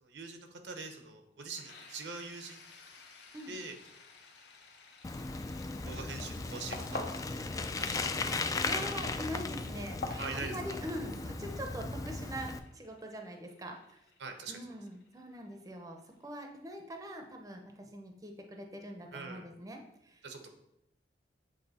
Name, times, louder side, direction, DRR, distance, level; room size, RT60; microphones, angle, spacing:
voice 1, 0.0-2.6 3.5-3.8 5.3-7.0 7.3-7.4 7.7-8.2 10.2-10.6 14.2-14.6 19.1-19.5 20.2-20.5, right 4 dB, 85° right, 5 dB, 0.9 m, -43 dB
sound 1, 1.6-17.1, left 4 dB, 80° left, 1.0 m, -59 dB
Bicycle, 5.0-12.6, left 3 dB, 20° left, 0.3 m, -37 dB
sound 2, 5.7-5.9 6.1-7.3 7.6-8.3 8.6-11.1, left 2 dB, 60° left, 0.8 m, -43 dB
voice 2, 8.6-14.0 14.5-20.2, equal, 20° right, 3 dB, 0.6 m, -43 dB
7.9 x 3.6 x 4.2 m, 0.80 s
head